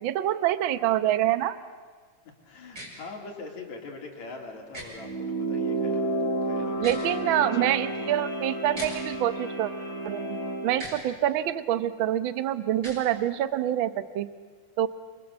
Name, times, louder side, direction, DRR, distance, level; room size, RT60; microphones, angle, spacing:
voice 1, 0.0-1.6 6.8-9.7 10.0-14.3 14.8-14.9, right 12 dB, 70° right, 12 dB, 1.2 m, -26 dB
voice 2, 2.4-8.1, left 3 dB, 65° left, 1 dB, 4.5 m, -42 dB
sound 1, 2.7-2.9 4.7-4.9 6.7-7.1 8.7-8.9 10.7-11.0 12.7-13.0, right 1 dB, 30° right, 6.8 m, -39 dB
sound 2, 5.0-10.7, right 2 dB, 45° left, 4.1 m, -31 dB
28.0 x 24.5 x 7.5 m, 1.5 s
omnidirectional pair, 3.4 m